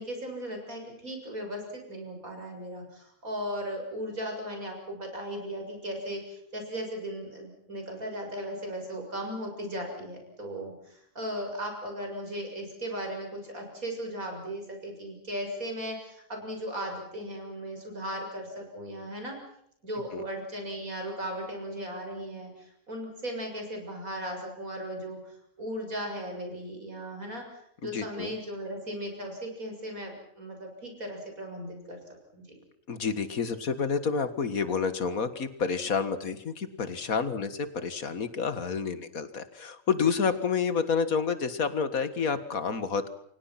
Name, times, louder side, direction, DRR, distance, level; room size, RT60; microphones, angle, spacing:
voice 1, 0.0-19.4 19.8-32.0 32.3-32.6, equal, 85° right, 3 dB, 7.3 m, -37 dB
voice 2, 27.9-28.3 32.9-43.1, left 5 dB, 85° left, 11 dB, 2.2 m, -29 dB
29.0 x 24.0 x 5.9 m, 0.72 s
omnidirectional pair, 1.4 m